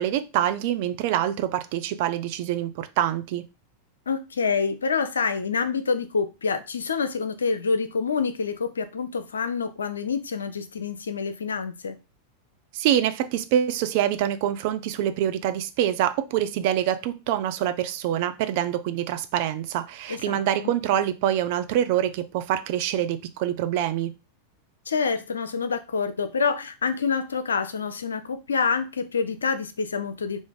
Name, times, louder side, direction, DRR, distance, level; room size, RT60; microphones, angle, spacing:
voice 1, 0.0-3.4 12.7-24.1, right 11 dB, 50° right, 0.4 m, -25 dB
voice 2, 4.1-12.0 20.1-20.7 24.9-30.4, left 5 dB, 70° left, 0.4 m, -27 dB
3.4 x 2.4 x 3.8 m
figure-of-eight pair, 90°, 0 cm